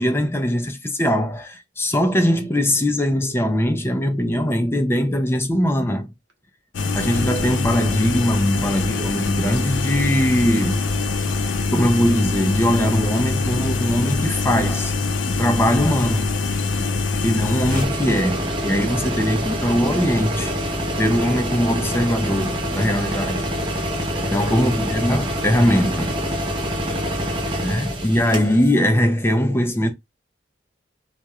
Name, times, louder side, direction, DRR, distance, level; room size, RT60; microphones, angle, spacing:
voice 1, 0.0-6.1 6.9-10.8 11.7-14.9 15.3-16.3 17.2-20.5 20.9-23.5 24.3-26.2 27.6-29.9, equal, 15° left, 0.4 m, -21 dB
sound 1, 6.7-17.9, left 3 dB, 90° left, 0.4 m, -23 dB
voice 2, 16.6-17.0 23.3-23.6 24.1-25.2, equal, 85° right, 0.9 m, -41 dB
sound 2, 17.7-28.8, equal, 25° right, 0.6 m, -26 dB
2.3 x 2.1 x 2.8 m
head